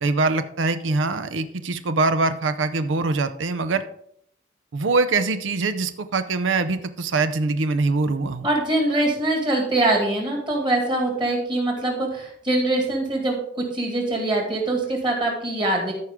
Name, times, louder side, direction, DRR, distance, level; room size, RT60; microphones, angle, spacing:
voice 1, 0.0-3.8 4.7-8.5, right 3 dB, 85° right, 11 dB, 0.6 m, -23 dB
voice 2, 8.4-13.4 13.7-15.9, right 2 dB, 25° right, 0 dB, 2.2 m, -23 dB
14.0 x 4.8 x 3.6 m, 0.69 s
head